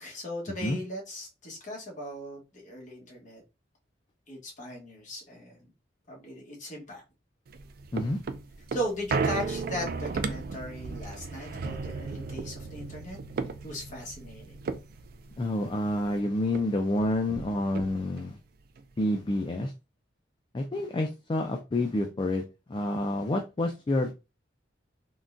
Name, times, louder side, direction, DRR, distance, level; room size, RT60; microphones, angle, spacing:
voice 1, 0.0-3.4 4.3-5.6 6.1-7.0 8.7-13.2 13.6-14.6, equal, 40° left, -2 dB, 1.1 m, -38 dB
sound 1, 7.5-16.2 16.5-16.6 16.9-18.3 18.8-18.9, right 4 dB, 50° right, 0.3 m, -35 dB
voice 2, 15.4-18.4 19.0-19.7 20.5-22.4 22.7-24.1, left 1 dB, 25° left, 3 dB, 0.3 m, -28 dB
3.7 x 2.2 x 2.5 m, 0.27 s
head